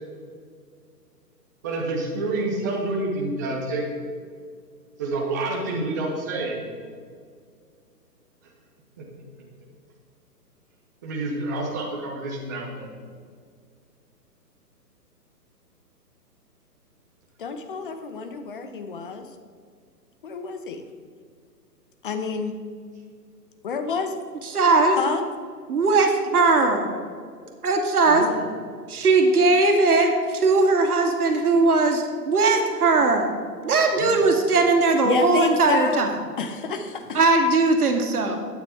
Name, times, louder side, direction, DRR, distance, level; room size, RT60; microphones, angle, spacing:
voice 1, 1.6-3.9 5.0-6.6 9.0-9.1 11.0-12.9 28.1-28.4 33.9-34.1 37.0-37.2, right 2 dB, 10° right, -2 dB, 0.7 m, -28 dB
voice 2, 17.4-19.2 20.2-20.8 22.0-22.5 23.6-24.2 25.0-25.2 35.0-36.1 36.4-37.2, left 5 dB, 30° left, 7 dB, 0.9 m, -28 dB
voice 3, 24.4-25.0 25.7-26.9 27.6-28.3 28.9-33.3 33.6-36.1 37.1-38.4, right 3 dB, 65° right, 4 dB, 2.1 m, -19 dB
11.5 x 9.3 x 4.3 m, 2.1 s
hypercardioid pair, 155°, 49 cm